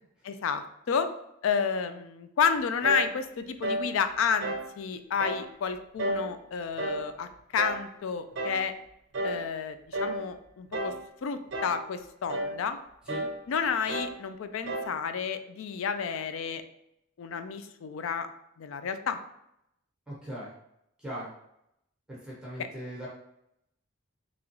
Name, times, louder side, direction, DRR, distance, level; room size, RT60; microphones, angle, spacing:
voice 1, 0.2-1.1 1.4-8.7 9.2-10.9 11.2-12.8 13.5-16.6 17.2-18.3 18.6-19.2, left 6 dB, 70° left, 10 dB, 0.3 m, -30 dB
sound 1, 2.8-3.1 3.6-3.9 4.4-4.7 5.2-5.5 6.0-6.3 6.8-7.1 7.6-7.9 8.4-8.7 9.1-9.5 9.9-10.2 10.7-11.1 11.5-11.9 12.3-12.6 13.1-13.4 13.9-14.2 14.7-15.0, right 1 dB, 55° right, 0.5 m, -32 dB
voice 2, 20.1-20.5 21.0-21.3 22.1-23.1, equal, 5° right, -7 dB, 1.0 m, -39 dB
3.6 x 3.0 x 3.0 m, 0.79 s
head